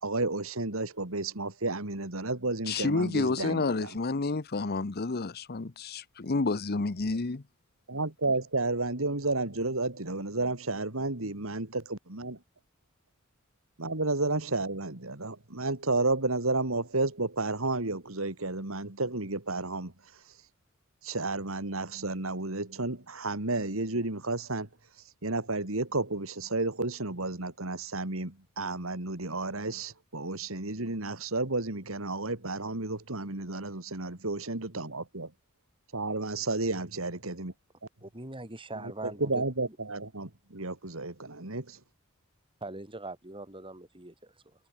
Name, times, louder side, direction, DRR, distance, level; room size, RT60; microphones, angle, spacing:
voice 1, 0.0-3.9 7.9-12.4 13.8-20.4 21.0-24.7 25.2-35.3 35.9-37.5 38.7-41.8, right 2 dB, 70° right, 2.9 m, -32 dB
voice 2, 2.7-7.4, left 3 dB, 50° left, 0.9 m, -30 dB
voice 3, 38.0-39.4 42.6-44.6, right 2 dB, 25° right, 6.3 m, -42 dB
head